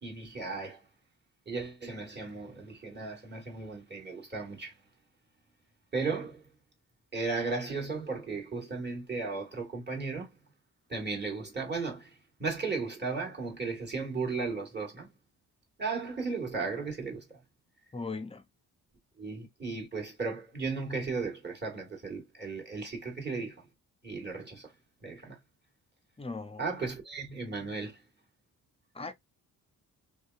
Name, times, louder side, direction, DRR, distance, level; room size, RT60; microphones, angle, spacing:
voice 1, 0.0-0.9 1.4-4.8 5.9-6.5 7.1-10.4 10.9-15.1 15.8-17.4 19.2-23.7 24.0-24.7 25.0-25.4 26.6-28.0, right 4 dB, 25° right, 1.5 m, -35 dB
voice 2, 17.9-18.5 26.2-26.6 28.9-29.1, left 3 dB, 15° left, 0.5 m, -38 dB
2.7 x 2.2 x 2.3 m
supercardioid pair, 55°, 42 cm